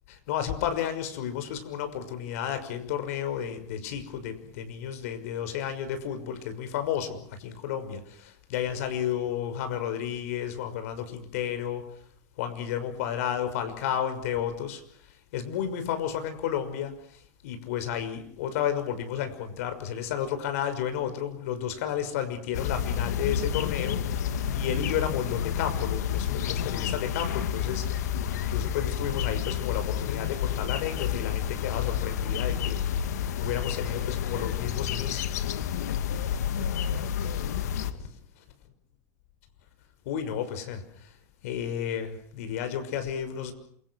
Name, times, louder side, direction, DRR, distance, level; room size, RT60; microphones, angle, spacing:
voice 1, 0.3-11.9 12.4-14.8 15.3-27.9 28.3-32.8 33.4-35.5 36.2-36.6 37.2-38.0 40.0-41.1 41.4-43.5, left 9 dB, 65° left, 9 dB, 6.1 m, -32 dB
sound 1, 22.5-37.9, left 9 dB, 90° left, 2.3 m, -30 dB
28.0 x 23.5 x 6.4 m, 0.63 s
supercardioid pair, 160°, 9 cm